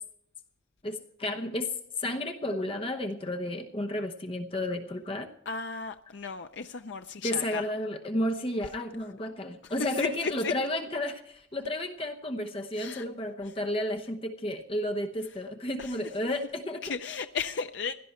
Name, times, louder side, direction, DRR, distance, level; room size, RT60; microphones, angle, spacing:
voice 1, 0.8-5.3 7.2-16.8, left 1 dB, 30° left, 0.9 m, -32 dB
voice 2, 5.5-7.7 9.6-10.5 12.7-13.1 13.4-13.6 15.3-15.4 15.8-16.0 16.8-17.9, left 5 dB, 65° left, 0.5 m, -35 dB
17.0 x 12.0 x 4.3 m
head